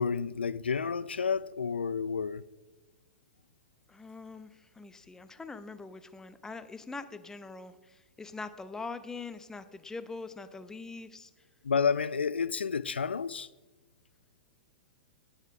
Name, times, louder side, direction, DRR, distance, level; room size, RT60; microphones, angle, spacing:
voice 1, 0.0-2.4 11.6-13.5, left 6 dB, 80° left, 0.4 m, -30 dB
voice 2, 3.9-11.3, left 3 dB, 10° left, 0.7 m, -43 dB
17.5 x 8.1 x 3.7 m
figure-of-eight pair, 100°, 6 cm